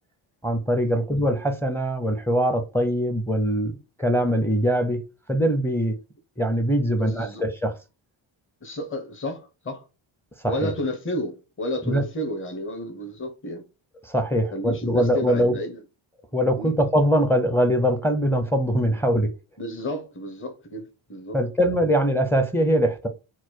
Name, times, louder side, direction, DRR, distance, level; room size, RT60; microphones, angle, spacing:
voice 1, 0.4-5.0 5.3-5.9 6.4-7.7 10.4-10.7 11.8-12.0 14.0-15.5 16.3-19.3 21.3-23.1, equal, 5° left, 0.6 m, -22 dB
voice 2, 6.9-7.4 8.6-9.8 10.5-13.6 14.5-15.8 16.6-16.7 19.6-21.4, left 1 dB, 25° left, 1.0 m, -31 dB
4.2 x 2.3 x 4.5 m
cardioid pair, 90°, 50 cm